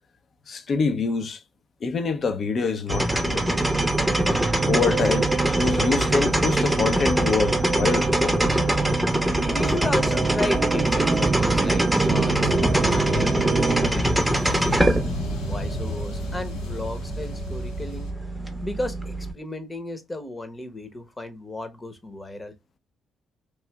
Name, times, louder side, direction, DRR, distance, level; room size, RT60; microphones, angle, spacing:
voice 1, 0.5-1.4 1.8-3.4 4.6-8.6, left 4 dB, 55° left, 0.6 m, -25 dB
sound 1, 2.9-19.3, right 1 dB, 5° right, 0.7 m, -24 dB
sound 2, 3.3-13.9, right 4 dB, 55° right, 0.5 m, -26 dB
voice 2, 9.5-12.5 12.8-15.0 15.4-18.1 18.6-22.5, left 1 dB, 25° left, 0.9 m, -34 dB
sound 3, 12.1-18.1, left 1 dB, 85° left, 0.9 m, -32 dB
3.1 x 2.7 x 2.2 m
hypercardioid pair, 55°, 0 cm